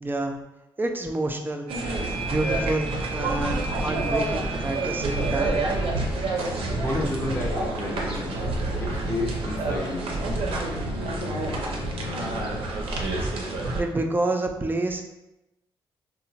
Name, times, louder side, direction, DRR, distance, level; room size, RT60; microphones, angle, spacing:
voice 1, 0.0-0.4 0.8-1.7 2.3-5.6 13.8-15.0, right 2 dB, 20° right, 4 dB, 0.4 m, -28 dB
sound 1, 1.7-13.8, right 2 dB, 75° right, 0.5 m, -28 dB
sound 2, 5.5-12.6, left 3 dB, 70° left, 0.4 m, -38 dB
voice 2, 6.8-8.4 8.8-10.1, left 2 dB, 25° left, -2 dB, 0.7 m, -31 dB
2.7 x 2.1 x 2.7 m, 0.94 s
cardioid pair, 65°, 9 cm